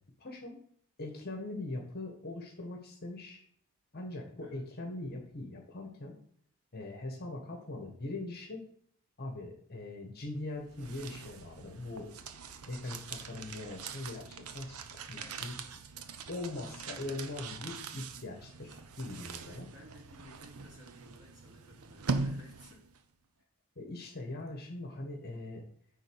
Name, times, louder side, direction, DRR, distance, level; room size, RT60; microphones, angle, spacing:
voice 1, 0.2-0.6 1.0-3.4 3.9-6.1 6.7-8.7 9.2-12.1 12.7-14.8 15.1-15.6 16.3-19.7 23.7-25.6, left 2 dB, 45° left, 2 dB, 1.5 m, -41 dB
sound 1, 10.4-23.0, right 4 dB, 75° right, 0.8 m, -42 dB
voice 2, 15.2-15.5 16.8-17.3 19.4-22.9, left 1 dB, 20° right, -4 dB, 3.2 m, -56 dB
9.3 x 4.0 x 6.4 m, 0.63 s
head